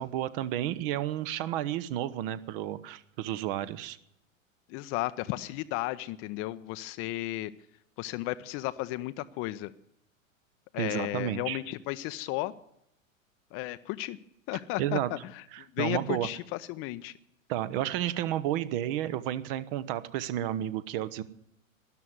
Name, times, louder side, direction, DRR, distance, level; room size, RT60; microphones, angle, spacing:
voice 1, 0.0-4.0 10.8-11.6 14.8-15.1 15.5-16.3 17.5-21.2, right 12 dB, 45° right, 14 dB, 1.0 m, -31 dB
voice 2, 4.7-7.5 8.0-9.7 10.7-12.5 13.5-14.2 14.5-17.1, left 17 dB, 35° left, 14 dB, 0.7 m, -34 dB
13.0 x 11.0 x 9.5 m, 0.76 s
figure-of-eight pair, 95°, 41 cm